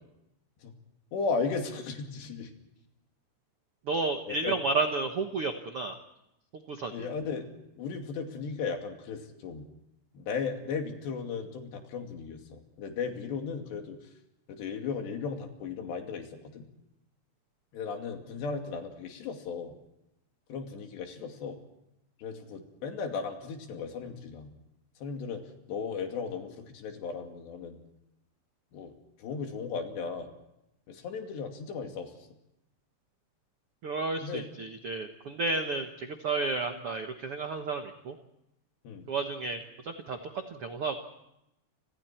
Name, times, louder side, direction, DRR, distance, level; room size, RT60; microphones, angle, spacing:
voice 1, 1.1-2.5 4.3-4.6 6.9-9.7 10.1-14.0 14.5-16.7 17.7-19.7 20.5-21.6 22.2-24.5 25.0-27.8 28.7-28.9 29.2-30.3 30.9-32.3 34.2-34.5 38.8-39.1, left 5 dB, 90° left, 4 dB, 4.8 m, -36 dB
voice 2, 3.8-6.0 6.5-7.1 33.8-38.2 39.1-40.2 40.5-41.0, right 3 dB, 75° right, 6 dB, 1.3 m, -32 dB
29.5 x 26.0 x 4.5 m, 0.86 s
omnidirectional pair, 4.8 m